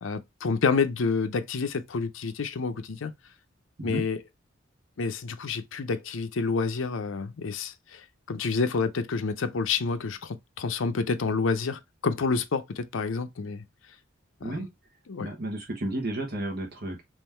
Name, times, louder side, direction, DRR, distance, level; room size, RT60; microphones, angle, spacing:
voice 1, 0.0-3.1 3.8-4.2 5.0-13.6 14.4-14.6 15.1-15.3, left 4 dB, 75° left, 0.6 m, -29 dB
voice 2, 15.2-17.0, right 1 dB, 55° right, 1.3 m, -32 dB
3.7 x 3.0 x 4.4 m
head